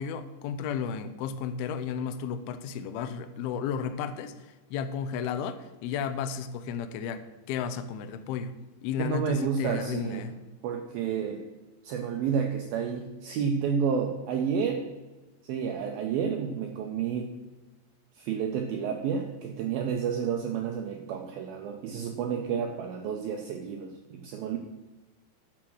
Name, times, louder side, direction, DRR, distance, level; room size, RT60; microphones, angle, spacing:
voice 1, 0.0-4.3 4.7-8.6 8.8-10.4, left 7 dB, 80° left, 10 dB, 2.3 m, -33 dB
voice 2, 9.0-10.3 10.6-11.4 11.8-14.8 15.4-17.3 18.2-24.6, right 7 dB, 80° right, 4 dB, 2.1 m, -30 dB
10.5 x 7.4 x 6.2 m, 1.2 s
omnidirectional pair, 5.2 m